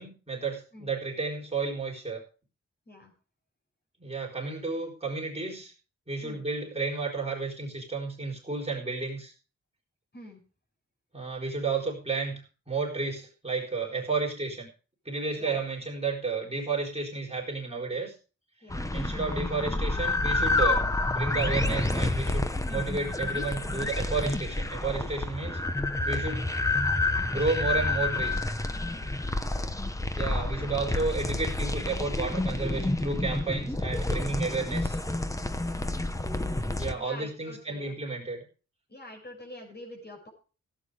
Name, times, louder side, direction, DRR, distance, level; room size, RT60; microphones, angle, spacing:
voice 1, 0.0-2.2 4.0-5.7 6.1-9.3 11.1-14.7 15.0-18.1 18.9-20.8 21.1-25.6 26.0-26.5 27.3-28.5 30.2-35.0 36.8-38.4, right 4 dB, 20° right, -2 dB, 4.3 m, -32 dB
sound 1, 18.7-36.9, left 2 dB, 10° left, 0.9 m, -29 dB
voice 2, 35.6-35.9 36.8-38.0 38.9-40.3, left 1 dB, 35° left, 1 dB, 6.0 m, -46 dB
16.0 x 8.7 x 5.0 m, 0.36 s
wide cardioid pair, 155°, 30 cm